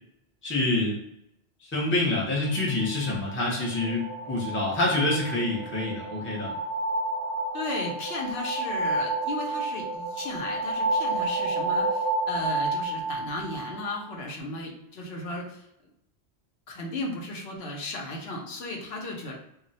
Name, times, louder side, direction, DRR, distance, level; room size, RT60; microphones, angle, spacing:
voice 1, 0.4-1.0 1.6-6.5, left 2 dB, 15° left, -3 dB, 0.5 m, -27 dB
sound 1, 2.5-14.1, right 2 dB, 75° right, 0.9 m, -30 dB
voice 2, 7.5-15.7 16.7-19.4, left 2 dB, 70° left, -1 dB, 0.8 m, -35 dB
2.3 x 2.1 x 3.9 m, 0.80 s
omnidirectional pair, 1.1 m